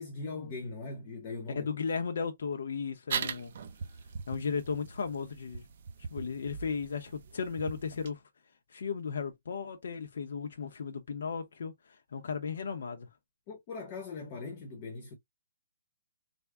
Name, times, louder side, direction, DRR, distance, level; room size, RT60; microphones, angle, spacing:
voice 1, 0.0-1.7 13.5-15.1, left 3 dB, 25° left, 0.7 m, -40 dB
voice 2, 1.5-3.5 4.3-5.6 6.1-8.2 8.7-13.1, left 5 dB, 65° left, 0.6 m, -35 dB
sound 1, 3.1-8.1, right 6 dB, 45° right, 0.5 m, -40 dB
3.4 x 2.0 x 3.5 m
hypercardioid pair, 170°, 0 cm